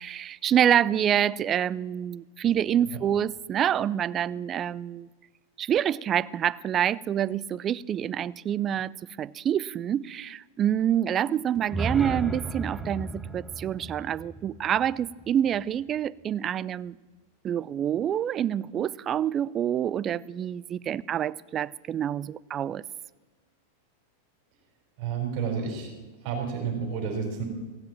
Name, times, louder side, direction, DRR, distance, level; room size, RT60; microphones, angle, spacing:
voice 1, 0.0-5.1 5.6-8.9 9.2-17.0 17.4-22.8, right 10 dB, 25° right, 0.3 m, -27 dB
sound 1, 11.6-15.6, right 2 dB, 5° right, 0.8 m, -35 dB
voice 2, 25.0-25.9 26.2-27.4, right 6 dB, 50° right, 4.4 m, -30 dB
16.0 x 7.8 x 7.3 m
supercardioid pair, 140°, 0 cm